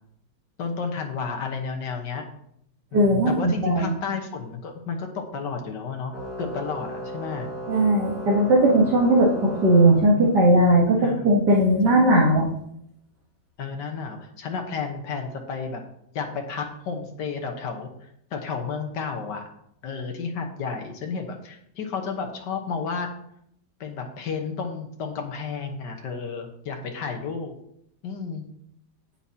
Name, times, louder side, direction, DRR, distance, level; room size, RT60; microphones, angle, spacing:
voice 1, 0.6-2.2 2.9-7.5 11.0-11.3 13.6-15.8 16.1-17.9 18.3-19.5 19.8-23.1 23.8-27.5 28.0-28.5, left 5 dB, 90° left, 3 dB, 1.8 m, -32 dB
voice 2, 2.9-3.9 7.7-12.5, right 1 dB, 75° right, -2 dB, 2.0 m, -18 dB
Organ, 6.1-10.6, equal, 60° left, 4.3 m, -36 dB
17.0 x 5.9 x 2.8 m, 0.72 s
omnidirectional pair, 1.8 m